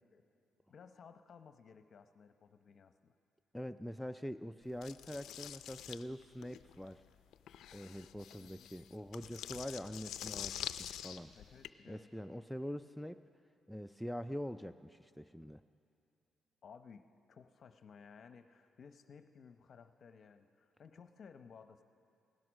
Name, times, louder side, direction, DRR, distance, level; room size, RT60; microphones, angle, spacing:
voice 1, 0.7-3.1 8.4-8.7 11.3-12.3 16.6-21.8, left 6 dB, 55° left, 9 dB, 0.8 m, -57 dB
voice 2, 3.5-7.0 7.7-11.3 11.9-13.2 13.7-15.6, equal, 5° left, 8 dB, 0.3 m, -44 dB
sound 1, 4.8-11.7, left 11 dB, 80° left, 0.4 m, -46 dB
17.0 x 11.0 x 6.3 m, 2.6 s
cardioid pair, 90°, 0 cm